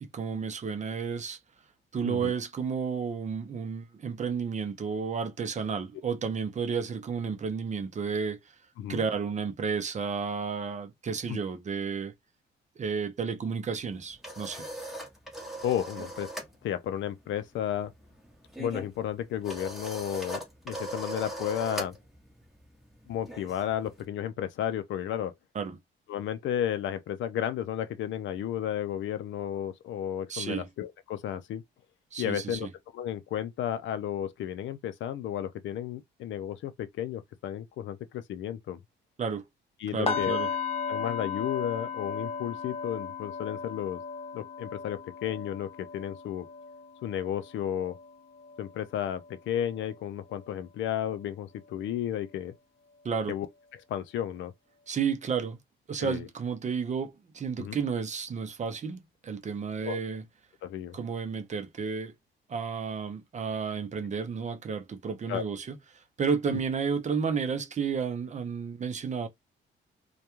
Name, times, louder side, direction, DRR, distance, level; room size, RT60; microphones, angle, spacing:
voice 1, 0.1-1.4 1.9-8.4 8.9-12.1 12.8-14.7 25.5-25.8 30.3-30.7 32.1-32.7 39.2-39.4 39.9-40.5 53.0-53.3 54.9-55.6 55.9-60.2 60.9-62.1 62.5-65.8 66.2-69.3, right 6 dB, 35° right, 0.5 m, -32 dB
sound 1, 13.9-16.6 16.8-17.1 17.4-24.1, right 1 dB, ahead, 0.9 m, -40 dB
voice 2, 15.6-16.3 16.6-17.9 18.6-21.9 23.1-25.3 26.1-31.6 32.2-32.7 32.9-38.8 39.8-40.4 40.9-44.0 44.3-46.5 47.0-48.0 48.6-52.5 53.3-53.5 53.9-54.5 56.0-56.3 57.6-57.8 59.8-60.0 60.6-61.0 65.3-65.4 66.5-66.6, left 10 dB, 70° left, 0.4 m, -33 dB
sound 2, 40.1-50.0 50.3-50.6 51.0-51.2, left 6 dB, 30° left, 0.6 m, -36 dB
2.2 x 2.2 x 2.9 m
cardioid pair, 90°, 20 cm